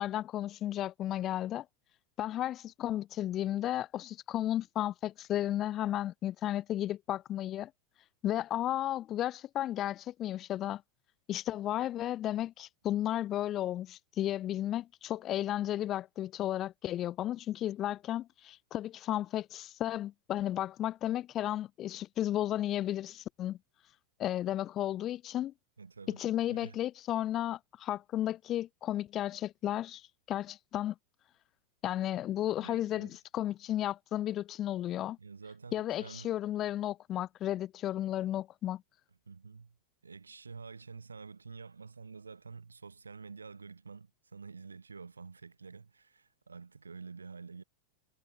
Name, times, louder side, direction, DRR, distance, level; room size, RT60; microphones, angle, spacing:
voice 1, 0.0-1.7 2.2-7.7 8.2-10.8 11.3-23.6 24.2-25.5 26.1-30.0 30.3-30.9 31.8-35.2 35.7-38.8, left 12 dB, 35° left, 0.5 m, -33 dB
voice 2, 25.8-26.2 26.5-26.8 32.6-33.1 35.2-36.3 39.3-39.8 40.0-47.6, right 4 dB, 80° right, 1.1 m, -48 dB
figure-of-eight pair, 90°, 0 cm